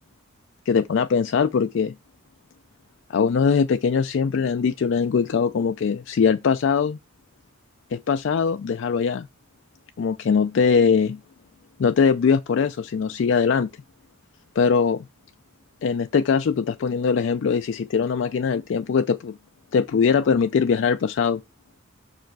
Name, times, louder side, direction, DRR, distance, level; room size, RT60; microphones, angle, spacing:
voice 1, 0.7-1.9 3.1-7.0 7.9-9.3 10.0-11.2 11.8-13.7 14.6-15.0 15.8-19.4 19.7-21.4, left 6 dB, 60° left, 0.3 m, -21 dB
6.3 x 4.8 x 4.5 m
head